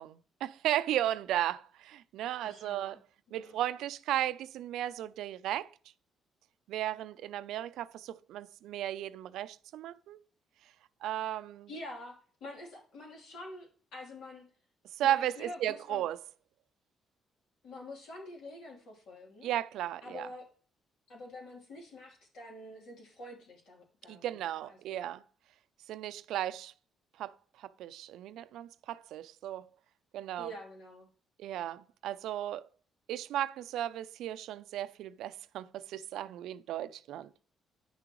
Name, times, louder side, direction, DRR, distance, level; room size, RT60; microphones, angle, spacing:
voice 1, 0.0-3.0 3.3-5.7 6.7-10.2 11.0-11.7 14.9-16.2 19.4-20.3 24.1-25.2 25.9-26.7 27.2-29.7 30.1-30.5 31.4-32.7 33.1-37.3, right 12 dB, 85° right, 0.4 m, -35 dB
voice 2, 2.4-3.0 3.3-3.6 11.7-14.4 15.0-16.0 17.6-19.5 20.0-20.5 21.1-25.1 30.4-31.1, left 1 dB, 80° left, 3.1 m, -47 dB
10.0 x 6.1 x 3.0 m
cardioid pair, 90°, 0 cm